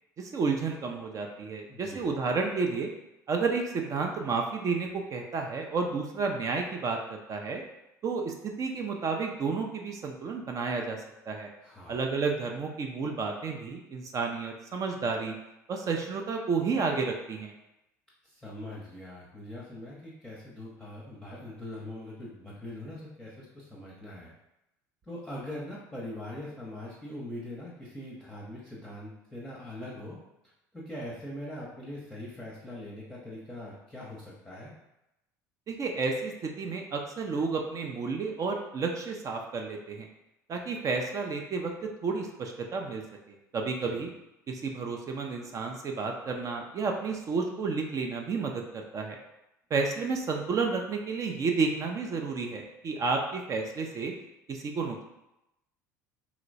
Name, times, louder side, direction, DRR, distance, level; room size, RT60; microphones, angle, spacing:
voice 1, 0.2-2.9 3.3-7.6 8.0-11.5 11.9-15.4 15.7-17.5 35.7-40.1 40.5-41.7 42.0-43.0 43.3-44.1 44.5-49.2 49.7-54.1 54.5-55.0, right 4 dB, 35° right, 2 dB, 0.4 m, -31 dB
voice 2, 1.7-2.1 11.6-12.0 18.2-24.3 25.1-30.2 30.7-34.7 43.8-44.0, left 1 dB, 5° left, -7 dB, 0.8 m, -42 dB
2.9 x 2.9 x 2.6 m, 0.90 s
figure-of-eight pair, 65°, 10 cm